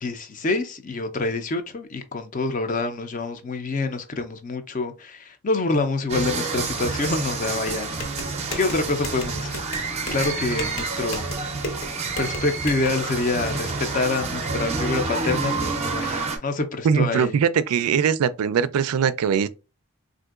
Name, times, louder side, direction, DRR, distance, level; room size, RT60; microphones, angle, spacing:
voice 1, 0.0-8.1 8.6-9.6 10.1-17.3, left 3 dB, 35° left, 0.4 m, -27 dB
sound 1, 6.1-16.4, right 4 dB, 30° right, 0.5 m, -28 dB
sound 2, 7.6-12.9, left 2 dB, 60° left, 0.9 m, -35 dB
voice 2, 16.8-19.5, right 7 dB, 85° right, 0.3 m, -21 dB
3.7 x 2.5 x 2.3 m
head